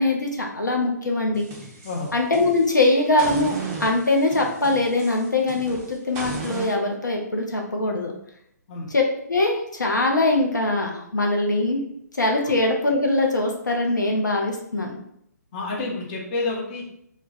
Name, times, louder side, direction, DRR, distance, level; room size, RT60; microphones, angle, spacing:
voice 1, 0.0-1.4 2.1-8.1 8.9-11.8 12.2-15.0, left 2 dB, 80° left, 1 dB, 0.6 m, -22 dB
sound 1, 1.3-2.8 3.2-6.7, right 4 dB, 20° right, 0.4 m, -35 dB
voice 2, 15.5-16.9, left 3 dB, 30° left, -2 dB, 0.6 m, -29 dB
2.2 x 2.1 x 3.8 m, 0.72 s
figure-of-eight pair, 130°, 10 cm